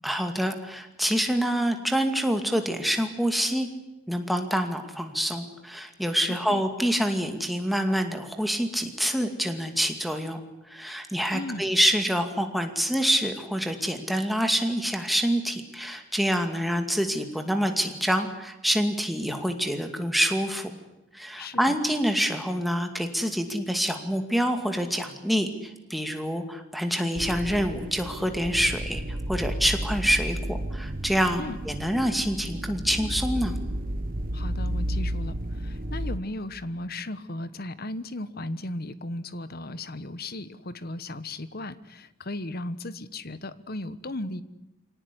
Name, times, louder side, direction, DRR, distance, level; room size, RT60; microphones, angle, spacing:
voice 1, 0.0-3.7 4.1-10.4 10.7-20.8 21.1-33.6, equal, ahead, 5 dB, 2.3 m, -26 dB
voice 2, 6.3-6.6 11.3-11.6 21.4-21.7 31.4-31.6 34.3-44.4, left 1 dB, 45° left, 14 dB, 1.2 m, -36 dB
sound 1, 27.1-36.2, right 1 dB, 40° right, 1.4 m, -32 dB
25.5 x 18.0 x 9.9 m, 0.98 s
head